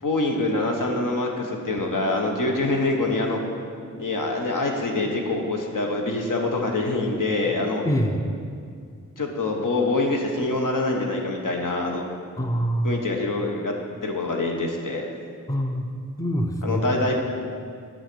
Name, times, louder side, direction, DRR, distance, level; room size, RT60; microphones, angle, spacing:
voice 1, 0.0-3.4 4.0-7.8 9.2-12.0 12.8-13.7 14.0-15.1 16.6-17.2, left 2 dB, 70° left, 1 dB, 1.1 m, -25 dB
voice 2, 7.9-8.2 12.4-13.0 15.5-15.9 16.2-16.9, equal, 10° left, 4 dB, 0.6 m, -24 dB
6.3 x 5.0 x 6.7 m, 2.2 s
cardioid pair, 45°, 33 cm